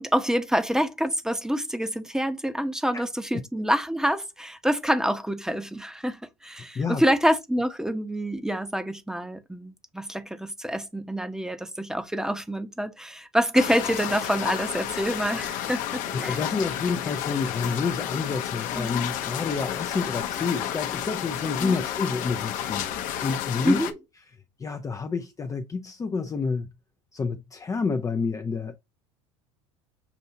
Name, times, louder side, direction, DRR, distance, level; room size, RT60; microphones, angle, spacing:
voice 1, 0.0-16.4 18.8-18.9 21.6-21.8 23.6-24.0, equal, 5° right, 0.9 m, -27 dB
sound 1, 13.5-23.9, left 11 dB, 55° left, 0.9 m, -31 dB
voice 2, 16.1-23.8 24.6-26.7 27.1-28.8, left 4 dB, 20° left, 0.6 m, -29 dB
7.0 x 2.7 x 2.7 m
hypercardioid pair, 85°, 16 cm